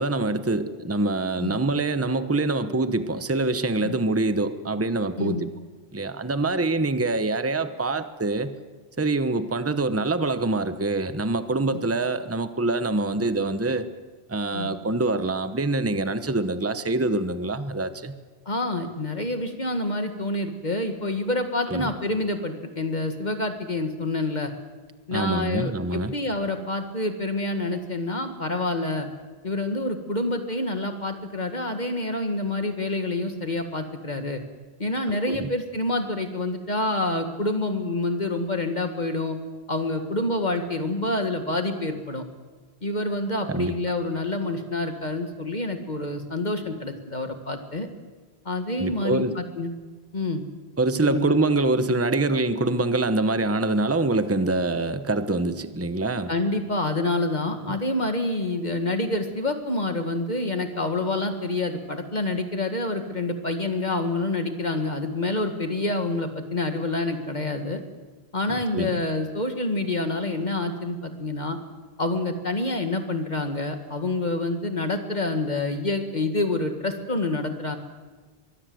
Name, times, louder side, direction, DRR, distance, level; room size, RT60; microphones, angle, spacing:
voice 1, 0.0-5.5 5.9-8.5 9.0-13.9 14.3-18.1 21.7-21.9 25.1-26.1 35.1-35.5 43.5-43.7 48.8-49.3 50.8-56.3 57.7-57.8 68.5-69.0, right 2 dB, 15° right, 10 dB, 1.0 m, -25 dB
voice 2, 18.5-24.5 25.1-29.1 29.4-34.4 34.8-39.4 39.7-42.2 42.8-47.9 48.5-49.7 50.1-50.4 51.0-51.4 56.3-67.8 68.3-71.6 72.0-77.8, left 2 dB, 45° left, 6 dB, 1.9 m, -27 dB
24.5 x 22.0 x 7.8 m, 1.3 s
omnidirectional pair, 1.1 m